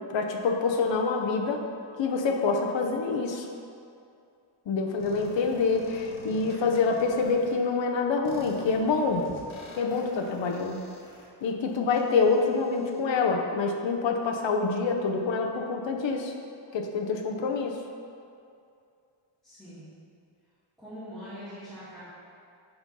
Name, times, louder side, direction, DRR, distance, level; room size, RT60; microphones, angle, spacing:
voice 1, 0.1-1.6 2.0-3.5 4.7-9.3 9.7-10.9 11.4-16.3 16.7-17.8, left 4 dB, 70° left, 2 dB, 0.8 m, -26 dB
sound 1, 5.0-7.5 8.2-13.0, left 3 dB, 90° left, 1.3 m, -46 dB
voice 2, 19.4-19.9 20.8-22.0, equal, ahead, -14 dB, 1.8 m, -43 dB
8.0 x 3.7 x 5.4 m, 2.5 s
wide cardioid pair, 175°, 46 cm